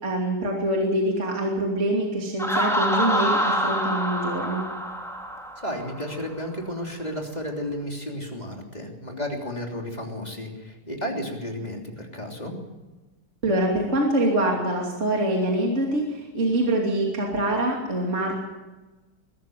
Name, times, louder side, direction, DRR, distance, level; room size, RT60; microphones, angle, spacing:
voice 1, 0.0-4.6 13.4-18.3, right 1 dB, 35° right, -1 dB, 3.1 m, -24 dB
Laughter, 2.4-6.1, equal, ahead, 2.7 m, -26 dB
voice 2, 5.6-12.5, equal, 20° left, 1 dB, 3.3 m, -33 dB
22.0 x 14.0 x 9.2 m, 1.1 s
omnidirectional pair, 2.3 m